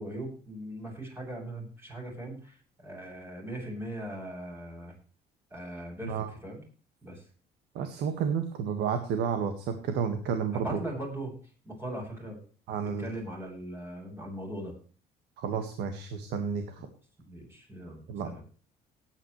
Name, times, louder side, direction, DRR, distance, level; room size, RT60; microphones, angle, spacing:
voice 1, 0.0-4.9 5.5-6.6 7.0-7.2 10.5-11.3 11.6-12.4 12.8-14.7 17.2-18.4, right 1 dB, 15° right, -1 dB, 7.8 m, -39 dB
voice 2, 7.7-10.8 12.7-13.1 15.4-16.9 18.1-18.3, right 7 dB, 85° right, 7 dB, 1.8 m, -31 dB
18.5 x 9.6 x 3.3 m, 0.40 s
cardioid pair, 110°, 17 cm